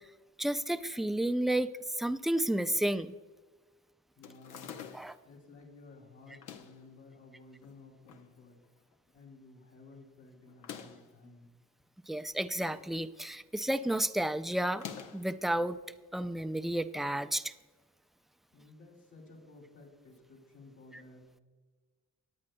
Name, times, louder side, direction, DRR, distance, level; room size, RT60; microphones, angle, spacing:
voice 1, 0.4-1.7 2.0-3.1 4.9-5.1 12.1-14.8 15.1-15.8 16.1-17.5, right 1 dB, ahead, 12 dB, 0.4 m, -31 dB
sound 1, 4.2-5.2 6.3-6.9 7.6-8.3 8.6-8.7 8.9-9.0 10.5-11.1 12.2-12.9 13.2-13.6 14.7-15.3, left 8 dB, 90° left, 0.8 m, -47 dB
voice 2, 4.2-4.8 5.2-8.6 9.1-11.5 18.5-21.3, left 3 dB, 65° left, 0 dB, 3.0 m, -55 dB
19.5 x 8.7 x 2.2 m, 1.3 s
cardioid pair, 90°, 30 cm